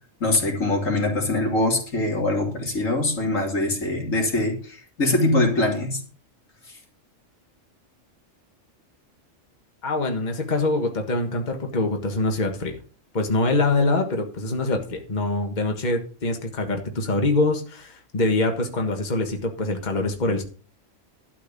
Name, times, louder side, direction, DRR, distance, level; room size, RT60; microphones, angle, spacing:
voice 1, 0.2-6.0 6.7-6.8, left 2 dB, 85° left, 1 dB, 3.2 m, -23 dB
voice 2, 9.8-12.8 13.1-20.4, left 2 dB, 35° left, 4 dB, 1.7 m, -24 dB
12.5 x 4.7 x 8.3 m, 0.39 s
omnidirectional pair, 1.3 m